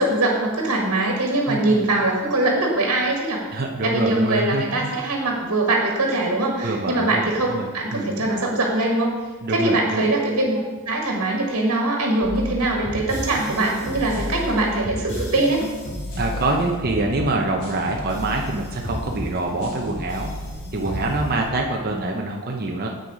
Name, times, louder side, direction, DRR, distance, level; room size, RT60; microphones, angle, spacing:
voice 1, 0.0-3.4 3.8-9.1 9.5-10.6 10.9-15.6 21.8-22.0, right 2 dB, 90° right, 0 dB, 1.6 m, -22 dB
voice 2, 1.4-1.9 3.5-4.6 6.6-7.2 7.5-8.4 9.4-10.0 16.2-20.3 20.7-22.9, right 2 dB, 45° right, 0 dB, 0.7 m, -25 dB
sound 1, 12.2-21.5, equal, 50° left, 2.8 m, -32 dB
7.7 x 6.6 x 5.0 m, 1.4 s
head